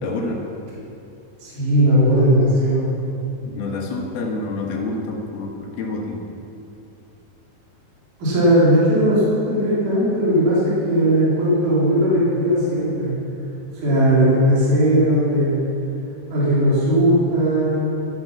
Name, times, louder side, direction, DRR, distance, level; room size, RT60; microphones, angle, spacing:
voice 1, 0.0-0.4 3.5-6.2, left 3 dB, 85° left, 0 dB, 3.8 m, -27 dB
voice 2, 1.4-2.9 8.2-13.2 13.7-15.6 16.3-17.9, right 1 dB, 55° right, -8 dB, 5.3 m, -18 dB
16.0 x 13.5 x 6.0 m, 2.8 s
omnidirectional pair, 4.3 m